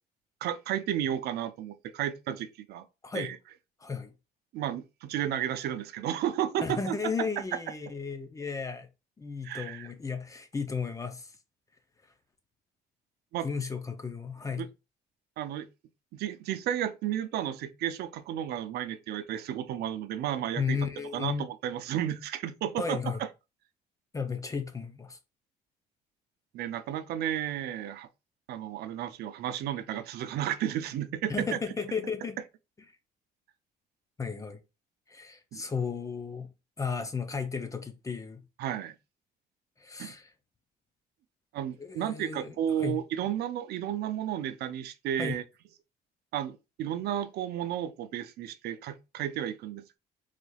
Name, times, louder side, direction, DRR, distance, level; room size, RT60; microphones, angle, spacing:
voice 1, 0.4-2.8 3.1-3.4 4.5-6.9 9.4-9.9 13.3-13.5 14.6-14.7 15.4-15.7 16.1-20.8 21.1-23.3 26.5-28.1 28.5-31.5 35.5-35.6 38.6-38.9 40.0-40.1 41.5-45.4 46.3-50.0, right 10 dB, 70° right, 0.5 m, -33 dB
voice 2, 3.8-4.1 6.6-8.9 9.2-11.3 13.4-14.7 20.6-21.4 22.8-23.2 24.1-25.2 31.3-32.4 34.2-34.6 35.1-36.5 36.8-38.4 39.8-40.3 41.8-43.0 45.2-45.4, left 5 dB, 20° left, 0.5 m, -34 dB
3.9 x 3.2 x 2.3 m
cardioid pair, 110°, 17 cm